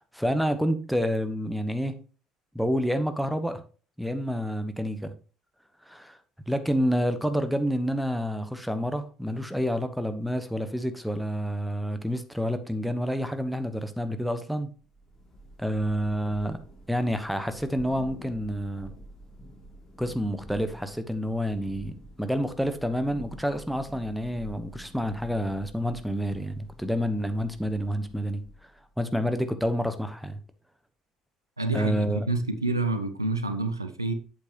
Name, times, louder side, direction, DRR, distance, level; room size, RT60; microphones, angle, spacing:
voice 1, 0.0-2.0 2.5-3.6 4.0-5.1 5.8-6.2 6.5-14.7 15.6-16.6 16.9-18.9 20.0-28.4 29.0-30.4 31.7-32.3, equal, ahead, 1.2 m, -28 dB
Thunder / Rain, 14.7-28.8, right 1 dB, 25° left, 3.4 m, -48 dB
voice 2, 31.6-34.1, right 2 dB, 90° right, 0.6 m, -28 dB
8.3 x 7.5 x 3.0 m
figure-of-eight pair, 55°, 2 cm